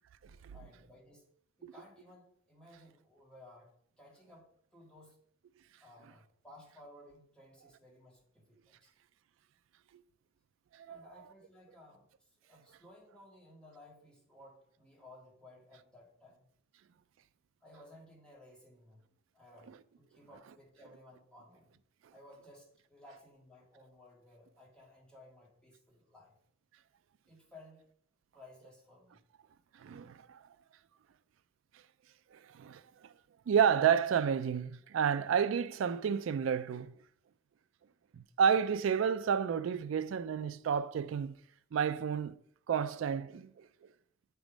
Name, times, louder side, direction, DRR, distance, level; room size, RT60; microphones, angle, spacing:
voice 1, 0.5-1.3 1.6-5.2 5.8-8.9 10.9-12.1 12.5-16.4 17.6-21.7 22.1-26.3 27.3-27.9 28.3-29.2, left 1 dB, 5° left, 1.9 m, -58 dB
voice 2, 29.8-30.4 32.3-32.8 33.5-36.9 38.1-41.3 41.7-42.3 42.7-43.7, right 7 dB, 85° right, 0.3 m, -30 dB
8.0 x 3.5 x 4.9 m
head